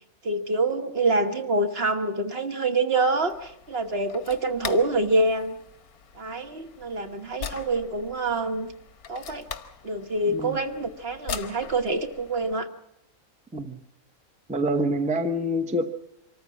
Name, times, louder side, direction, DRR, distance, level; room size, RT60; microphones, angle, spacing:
voice 1, 0.2-5.6 6.1-8.7 9.1-9.5 9.8-12.7, right 2 dB, 45° right, 6 dB, 1.4 m, -26 dB
sound 1, 3.2-12.6, left 7 dB, 90° left, 1.6 m, -41 dB
voice 2, 10.3-10.6 13.5-13.8 14.5-15.9, equal, 5° right, 7 dB, 0.8 m, -26 dB
25.0 x 14.0 x 8.4 m, 0.80 s
omnidirectional pair, 1.5 m